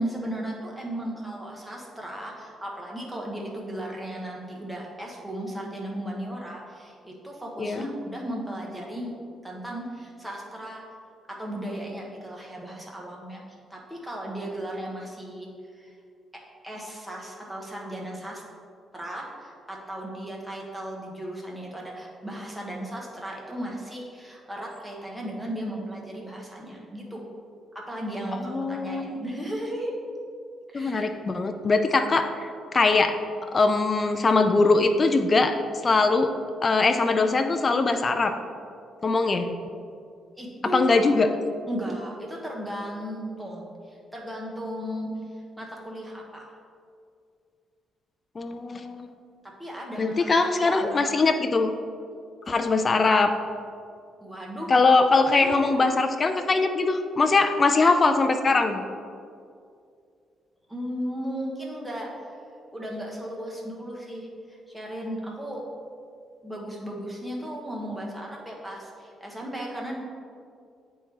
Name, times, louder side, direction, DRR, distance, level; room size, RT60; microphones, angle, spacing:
voice 1, 0.0-9.2 9.4-10.8 11.3-13.4 13.7-15.9 16.6-18.4 18.9-27.3 27.7-29.9 30.7-31.1 40.4-41.1 41.7-45.1 45.6-46.6 49.6-50.1 50.5-51.0 54.2-54.7 55.3-55.8 60.7-62.1 62.7-65.6 66.4-70.0, right 1 dB, 5° right, -2 dB, 1.2 m, -35 dB
voice 2, 28.5-29.2 30.7-33.2 33.5-35.6 35.8-36.3 36.6-38.4 39.0-39.5 40.6-41.3 48.4-49.1 50.0-51.7 52.5-53.3 54.7-58.8, left 3 dB, 35° left, 7 dB, 0.3 m, -22 dB
9.0 x 3.6 x 3.0 m, 2.3 s
cardioid pair, 90°, 0 cm